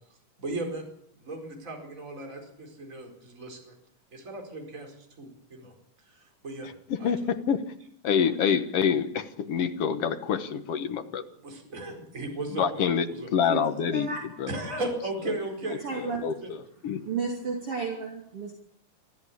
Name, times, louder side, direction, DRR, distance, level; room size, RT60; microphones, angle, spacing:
voice 1, 0.4-0.9 1.2-3.7 4.1-5.7 6.0-6.7 7.0-7.1 11.4-12.8 13.1-13.3 14.5-16.1, right 2 dB, 25° right, 3 dB, 4.8 m, -36 dB
voice 2, 6.9-7.7 8.0-11.2 12.5-13.0 13.3-14.1 14.4-14.5 15.7-16.6 16.8-17.0, left 7 dB, 60° left, 9 dB, 1.8 m, -27 dB
voice 3, 15.8-16.3 17.0-18.5, right 5 dB, 45° right, 1 dB, 3.4 m, -32 dB
23.5 x 14.5 x 8.5 m, 0.71 s
omnidirectional pair, 3.8 m